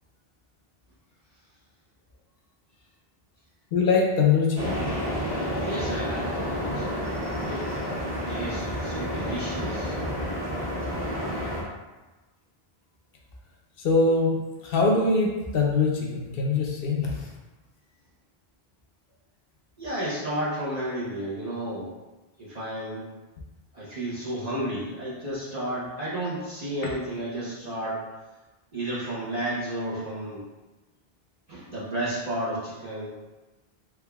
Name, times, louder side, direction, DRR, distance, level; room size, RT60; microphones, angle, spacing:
voice 1, 3.7-4.8 13.8-14.4 14.6-17.3, left 4 dB, 70° left, -1 dB, 0.8 m, -23 dB
sound 1, 4.6-11.6, equal, 15° right, 1.2 m, -30 dB
voice 2, 5.6-6.9 7.4-7.7 8.0-10.0 19.8-21.9 22.4-23.1 23.7-28.0 28.7-30.4 31.5-33.2, right 1 dB, 40° right, -8 dB, 0.9 m, -32 dB
3.5 x 3.2 x 2.3 m, 1.2 s
omnidirectional pair, 1.0 m